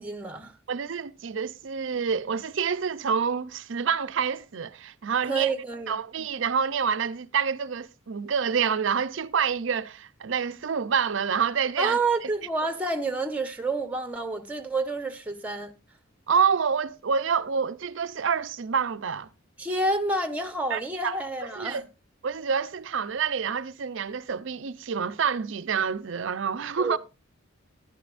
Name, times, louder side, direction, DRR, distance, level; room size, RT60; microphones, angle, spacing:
voice 1, 0.0-0.5 5.2-6.0 11.8-15.7 19.6-21.8 26.8-27.0, right 2 dB, 5° right, 1.0 m, -29 dB
voice 2, 0.7-5.5 5.9-12.3 16.3-19.3 20.7-21.2 21.5-21.8 22.2-27.0, right 6 dB, 65° right, 0.5 m, -27 dB
14.5 x 10.5 x 2.5 m
head